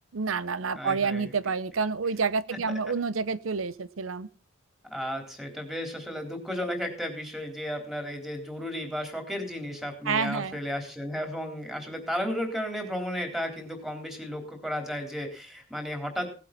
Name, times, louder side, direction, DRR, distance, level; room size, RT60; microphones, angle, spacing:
voice 1, 0.1-4.3 10.1-10.6, right 5 dB, 90° right, 16 dB, 0.7 m, -28 dB
voice 2, 0.7-1.3 4.8-16.3, equal, ahead, 4 dB, 3.7 m, -34 dB
18.0 x 8.5 x 5.9 m, 0.36 s
head